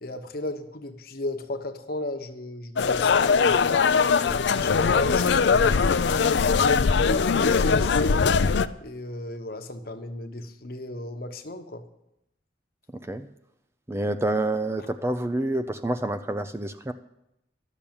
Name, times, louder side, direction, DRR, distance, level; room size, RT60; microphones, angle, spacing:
voice 1, 0.0-6.1 6.7-8.3 8.8-11.8, left 1 dB, 55° left, 6 dB, 1.1 m, -34 dB
sound 1, 2.8-8.7, left 5 dB, 70° left, 0.4 m, -21 dB
voice 2, 13.9-16.9, right 1 dB, 15° right, 10 dB, 0.4 m, -28 dB
12.0 x 6.9 x 8.7 m, 0.83 s
head